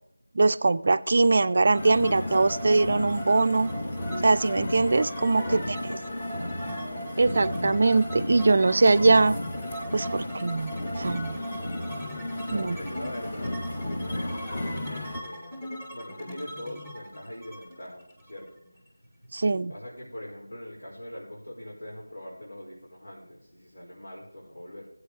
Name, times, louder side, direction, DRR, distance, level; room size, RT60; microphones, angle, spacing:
voice 1, 0.3-3.7 4.2-5.6 7.2-9.4 9.9-11.4 12.5-12.8 19.3-19.7, right 3 dB, 40° right, 0.5 m, -22 dB
sound 1, 1.2-18.9, equal, 10° left, 1.4 m, -40 dB
sound 2, 1.8-15.2, left 1 dB, 30° left, 1.5 m, -34 dB
voice 2, 5.3-6.5 12.4-19.4 19.7-24.9, left 1 dB, 75° left, 5.6 m, -42 dB
18.5 x 8.4 x 3.3 m
figure-of-eight pair, 170°, 0 cm